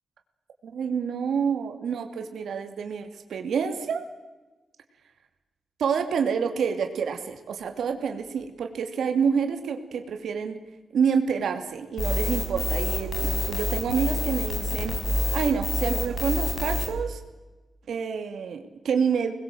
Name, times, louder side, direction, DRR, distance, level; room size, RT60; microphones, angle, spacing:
voice 1, 0.6-4.0 5.8-10.6 10.9-15.0 15.3-17.2 17.9-19.3, right 6 dB, 85° right, 6 dB, 2.6 m, -28 dB
sound 1, 12.0-16.9, left 2 dB, 60° left, 6.4 m, -27 dB
25.5 x 21.0 x 7.8 m, 1.2 s
wide cardioid pair, 165°, 0 cm